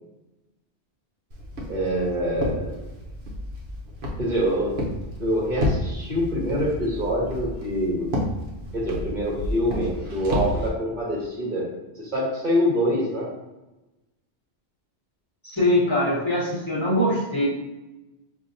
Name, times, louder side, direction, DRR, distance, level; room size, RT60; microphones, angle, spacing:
Walk footsteps, 1.3-10.7, left 1 dB, 70° right, 1.1 m, -31 dB
voice 1, 1.7-2.7 4.2-4.8 5.2-8.1 8.7-11.7 12.0-13.3, equal, 45° right, -5 dB, 1.3 m, -25 dB
voice 2, 15.4-17.5, left 1 dB, 30° left, -8 dB, 1.1 m, -22 dB
6.2 x 2.8 x 2.6 m, 1.0 s
omnidirectional pair, 1.1 m